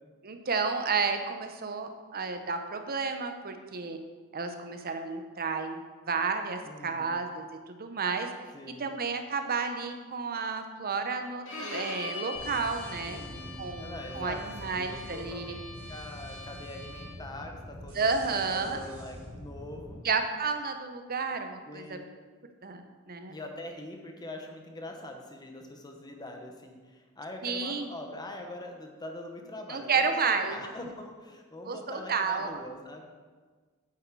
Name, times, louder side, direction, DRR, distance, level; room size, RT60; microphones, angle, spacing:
voice 1, 0.2-4.0 4.3-5.8 6.1-8.3 8.8-13.2 13.6-15.6 17.9-18.8 20.0-22.0 22.6-23.3 27.4-27.9 29.7-30.6 31.7-32.6, right 5 dB, 45° right, 7 dB, 0.9 m, -31 dB
voice 2, 6.6-7.1 8.5-8.9 13.1-15.5 15.9-20.0 21.7-22.0 23.3-33.1, left 1 dB, 20° left, 3 dB, 1.1 m, -43 dB
Bowed string instrument, 11.5-17.3, left 2 dB, 60° left, 2.6 m, -42 dB
sound 1, 12.3-20.0, equal, 70° right, 3.3 m, -45 dB
8.7 x 7.9 x 4.7 m, 1.4 s
head